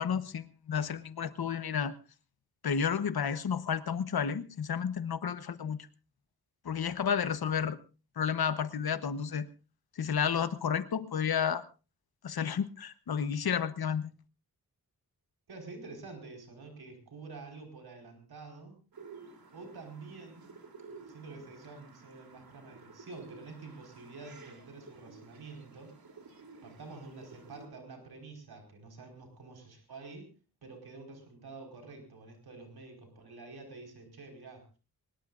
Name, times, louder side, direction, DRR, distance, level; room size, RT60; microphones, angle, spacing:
voice 1, 0.0-1.9 2.6-5.8 6.6-7.8 8.2-9.5 10.0-11.6 12.2-14.1, left 7 dB, 80° left, 12 dB, 1.1 m, -31 dB
voice 2, 15.5-18.8 19.5-20.6 21.0-25.9 26.6-30.3 30.6-34.7, right 3 dB, 90° right, 3 dB, 4.8 m, -48 dB
sound 1, 18.9-27.7, right 4 dB, 75° right, 3.3 m, -53 dB
22.5 x 20.5 x 2.5 m, 0.33 s
wide cardioid pair, 150°, 37 cm